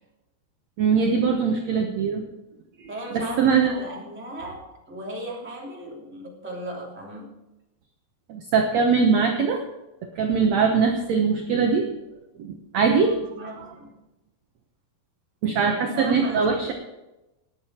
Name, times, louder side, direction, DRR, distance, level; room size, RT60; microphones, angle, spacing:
voice 1, 0.8-2.2 2.8-3.7 8.3-9.6 10.2-11.9 12.4-13.2 15.4-16.7, right 5 dB, 75° right, 3 dB, 1.6 m, -22 dB
voice 2, 2.9-7.3 13.1-13.9 15.8-16.5, right 1 dB, 5° right, -3 dB, 2.0 m, -36 dB
20.0 x 8.9 x 4.4 m, 0.97 s
omnidirectional pair, 4.7 m